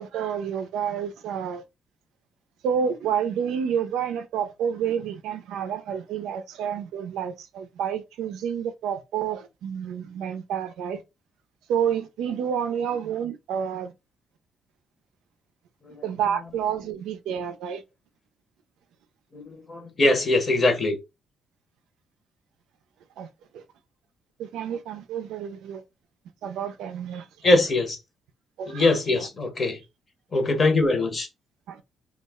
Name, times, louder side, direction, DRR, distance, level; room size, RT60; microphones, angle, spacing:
voice 1, 0.0-1.6 2.6-11.0 11.7-13.9 16.0-17.8 23.2-23.6 24.4-25.8 26.4-27.6 28.6-28.9 29.2-29.3 31.7-31.8, right 8 dB, 85° right, 0.4 m, -29 dB
voice 2, 19.3-21.0 27.4-28.0 28.7-29.8 30.3-31.3, left 2 dB, 35° left, 0.8 m, -22 dB
2.3 x 2.0 x 3.4 m
cardioid pair, 90°, 0 cm